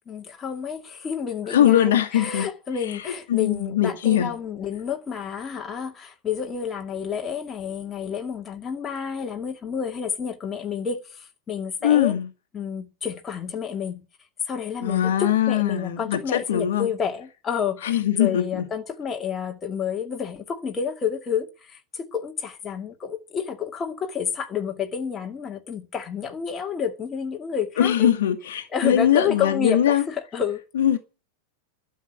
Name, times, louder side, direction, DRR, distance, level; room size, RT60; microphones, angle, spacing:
voice 1, 0.1-12.1 12.5-14.0 14.5-28.1 28.7-30.6, left 7 dB, 20° left, 2.3 m, -30 dB
voice 2, 1.5-2.5 3.3-4.3 11.8-12.3 14.8-16.9 17.8-18.6 27.8-30.0 30.8-31.0, left 10 dB, 60° left, 1.7 m, -21 dB
12.0 x 7.3 x 9.4 m
figure-of-eight pair, 90°, 0 cm